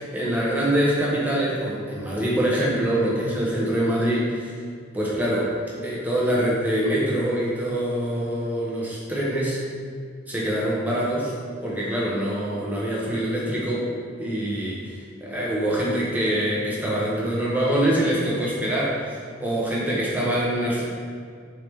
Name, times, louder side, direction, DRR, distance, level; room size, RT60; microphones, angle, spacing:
voice 1, 0.0-4.5 4.9-5.5 5.8-9.6 10.3-11.3 11.6-13.9 14.2-20.8, right 1 dB, 10° right, -6 dB, 0.8 m, -24 dB
4.6 x 3.4 x 3.1 m, 2.1 s
head